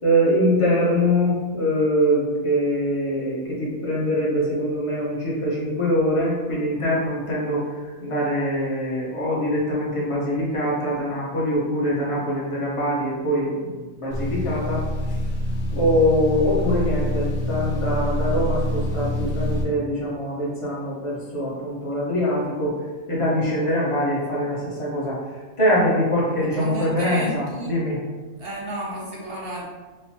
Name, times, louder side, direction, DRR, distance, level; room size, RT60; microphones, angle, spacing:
voice 1, 0.0-15.2 15.7-22.8 23.1-28.0, equal, 25° left, -7 dB, 1.1 m, -23 dB
sound 1, 14.1-19.6, left 1 dB, 60° left, 1.3 m, -26 dB
voice 2, 26.5-27.7 28.4-29.6, right 1 dB, 50° right, -4 dB, 0.9 m, -32 dB
4.7 x 2.3 x 2.9 m, 1.3 s
omnidirectional pair, 1.5 m